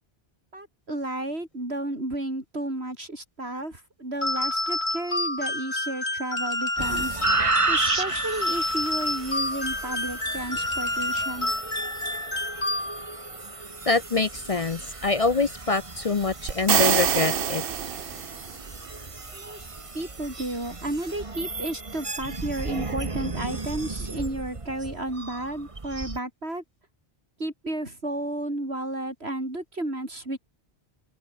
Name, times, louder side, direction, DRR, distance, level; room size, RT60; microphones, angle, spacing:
voice 1, 0.5-11.5 19.3-19.6 19.9-26.6 27.4-30.4, right 1 dB, 80° right, 6.5 m, -32 dB
sound 1, 4.2-13.2, left 1 dB, 80° left, 6.4 m, -29 dB
sound 2, 6.8-26.2, right 3 dB, 30° right, 1.5 m, -33 dB
voice 2, 13.9-17.6, left 3 dB, 40° left, 0.7 m, -25 dB
sound 3, 16.5-18.6, right 9 dB, 60° right, 0.9 m, -24 dB
open air
omnidirectional pair, 1.1 m